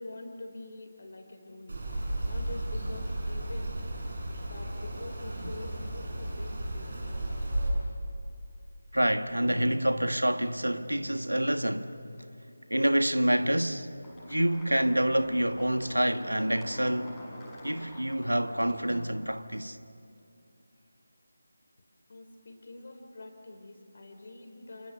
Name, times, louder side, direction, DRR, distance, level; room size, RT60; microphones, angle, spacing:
voice 1, 0.0-3.8 4.4-7.3 22.1-24.9, left 2 dB, 45° left, 4.4 m, -46 dB
sound 1, 1.7-7.7, right 1 dB, 50° right, 7.5 m, -34 dB
voice 2, 8.9-12.0 12.7-13.9 14.3-17.1 17.6-19.8, right 1 dB, 80° right, 1.5 m, -27 dB
sound 2, 14.0-19.5, equal, 5° left, 5.8 m, -48 dB
28.5 x 28.0 x 6.9 m
figure-of-eight pair, 160°, 0 cm